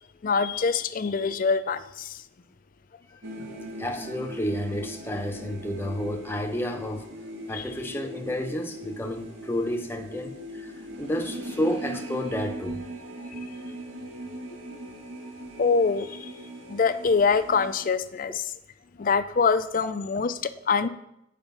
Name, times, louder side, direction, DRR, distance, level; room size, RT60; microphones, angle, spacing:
voice 1, 0.2-2.2 3.4-3.5 7.5-7.6 13.2-13.3 15.6-16.3 16.7-18.4 19.0-20.9, left 5 dB, 45° left, 0.4 m, -24 dB
sound 1, 3.2-17.9, right 1 dB, 70° right, 1.7 m, -40 dB
voice 2, 3.8-7.1 7.5-12.8, equal, 10° left, 0.8 m, -31 dB
8.8 x 5.1 x 5.4 m
head